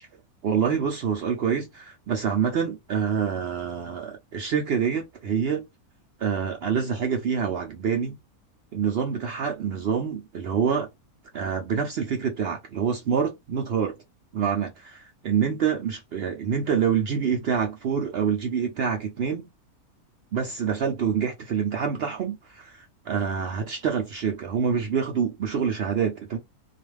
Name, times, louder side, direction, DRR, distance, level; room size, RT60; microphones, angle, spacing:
voice 1, 0.4-5.6 6.2-8.1 8.7-10.9 11.3-13.9 14.3-19.5 20.3-26.4, right 7 dB, 70° right, 0.5 m, -26 dB
2.4 x 2.3 x 3.1 m
omnidirectional pair, 1.6 m